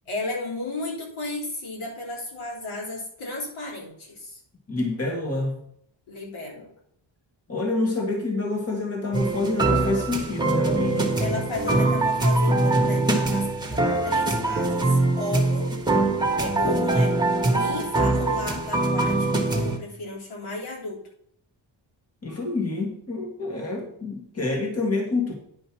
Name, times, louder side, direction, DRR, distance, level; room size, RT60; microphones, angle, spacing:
voice 1, 0.1-4.4 6.1-6.7 11.2-15.7 16.4-17.1 17.5-21.0, left 2 dB, 85° left, -3 dB, 3.6 m, -33 dB
voice 2, 4.7-5.5 7.5-11.1 22.2-25.3, left 3 dB, 30° left, 1 dB, 1.9 m, -27 dB
sound 1, 9.1-19.8, right 2 dB, 10° right, 1.4 m, -23 dB
10.5 x 5.2 x 6.1 m, 0.69 s
wide cardioid pair, 155°, 48 cm